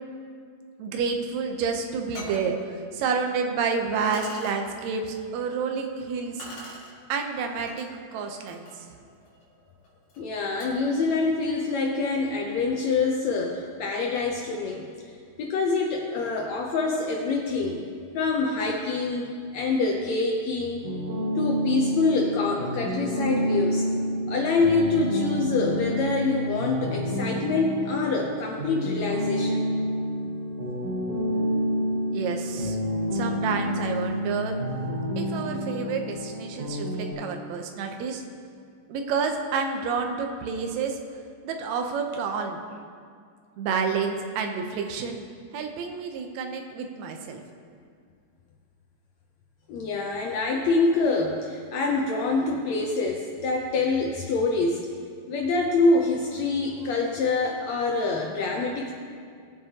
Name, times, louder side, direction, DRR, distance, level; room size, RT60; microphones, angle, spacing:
voice 1, 0.8-6.5 7.1-8.7 32.1-32.8 33.1-34.6 35.2-38.2 38.9-41.0 41.4-42.6 43.6-45.2 45.5-47.4, right 5 dB, 70° right, 4 dB, 1.8 m, -29 dB
sound 1, 1.5-1.6 2.1-2.5 3.4-3.5 4.1-4.6 6.4-6.9 7.7-7.9 8.3-10.9, left 1 dB, 55° left, 2.8 m, -44 dB
voice 2, 10.2-17.8 18.1-20.8 21.4-23.9 24.3-29.7 49.7-54.9 55.3-58.9, left 3 dB, 75° left, 0 dB, 1.6 m, -26 dB
sound 2, 20.8-37.1, equal, 50° right, 2.2 m, -29 dB
20.0 x 7.3 x 2.9 m, 2.2 s
omnidirectional pair, 4.0 m